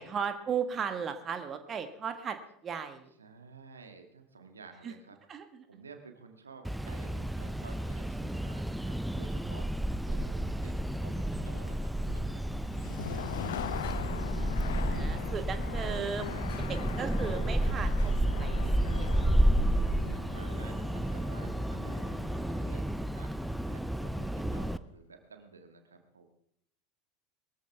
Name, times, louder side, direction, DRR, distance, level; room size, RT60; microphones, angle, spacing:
voice 1, 0.0-2.4 2.6-3.1 4.8-4.9 5.3-5.6 9.3-9.6 14.9-16.3 16.7-18.1 18.4-19.2, right 6 dB, 30° right, 8 dB, 1.6 m, -36 dB
voice 2, 3.2-5.2 5.7-9.7 10.1-12.4 13.0-15.2 16.3-17.2 20.0-26.3, right 4 dB, 80° right, 6 dB, 1.7 m, -53 dB
sound 1, 6.6-24.8, right 1 dB, 5° right, 0.6 m, -31 dB
sound 2, 12.6-24.4, left 10 dB, 65° left, 0.8 m, -42 dB
22.0 x 14.5 x 3.5 m, 0.70 s
figure-of-eight pair, 75°, 0 cm